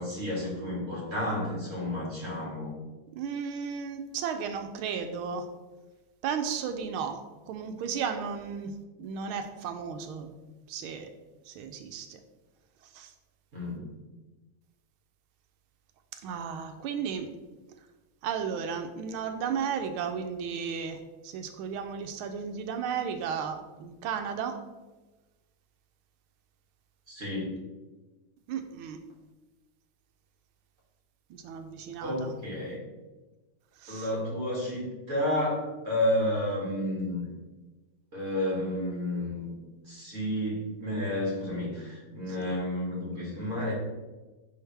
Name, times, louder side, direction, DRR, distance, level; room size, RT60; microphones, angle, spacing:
voice 1, 0.0-2.7 13.5-13.9 27.1-27.5 32.0-32.8 33.9-37.3 38.1-39.6 39.9-43.7, left 1 dB, 40° right, -4 dB, 2.4 m, -31 dB
voice 2, 3.1-5.5 6.2-7.2 7.5-10.3 10.7-11.1 11.5-12.2 12.9-13.1 16.2-17.3 18.2-24.6 28.5-29.0 31.3-32.3 33.8-34.1 42.3-42.6, right 7 dB, 85° right, 7 dB, 1.5 m, -34 dB
10.5 x 3.5 x 3.3 m, 1.2 s
omnidirectional pair, 2.3 m